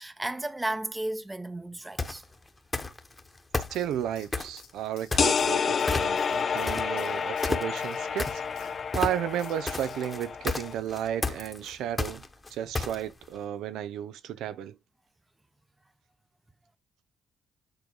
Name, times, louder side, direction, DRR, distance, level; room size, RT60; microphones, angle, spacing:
voice 1, 0.0-2.2 6.1-6.2, right 1 dB, 15° right, 0.7 m, -34 dB
sound 1, 2.0-2.2 2.7-3.2 3.5-4.6 5.1-5.6 5.9-6.4 6.7-13.2, left 3 dB, 20° left, 1.1 m, -31 dB
sound 2, 3.7-10.0, left 8 dB, 90° left, 1.5 m, -53 dB
voice 2, 3.7-12.2 12.5-14.8, right 10 dB, 85° right, 0.5 m, -33 dB
sound 3, 5.2-10.7, left 6 dB, 45° left, 0.4 m, -29 dB
8.9 x 3.9 x 3.6 m
cardioid pair, 90°, 0 cm